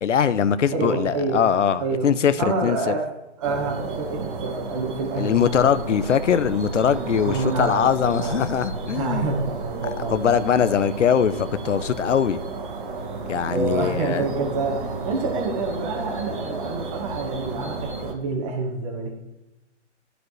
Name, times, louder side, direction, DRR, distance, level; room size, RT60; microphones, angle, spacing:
voice 1, 0.0-2.9 5.1-9.3 9.8-12.4 13.3-14.2, left 8 dB, 80° left, 13 dB, 0.7 m, -22 dB
voice 2, 0.7-1.4 1.8-2.1 2.4-6.1 6.9-8.4 8.7-10.7 13.4-19.1, right 3 dB, 25° right, 0 dB, 1.4 m, -28 dB
sound 1, 3.4-18.1, right 3 dB, 45° right, 1.7 m, -32 dB
14.0 x 5.0 x 3.1 m, 0.95 s
hypercardioid pair, 155°, 36 cm